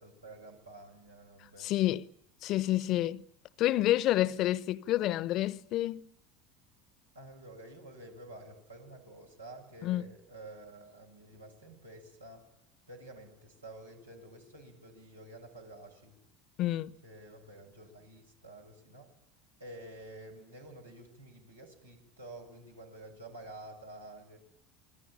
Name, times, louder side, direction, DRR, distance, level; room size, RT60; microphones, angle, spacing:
voice 1, 0.0-1.8 7.1-12.5 12.9-16.2 17.0-19.1 19.6-24.4, right 1 dB, 90° right, 7.4 m, -50 dB
voice 2, 1.6-2.1 2.4-3.2 3.6-6.1 9.8-10.0 16.6-17.0, left 14 dB, 50° left, 1.0 m, -29 dB
28.0 x 21.0 x 9.0 m
figure-of-eight pair, 70°, 0 cm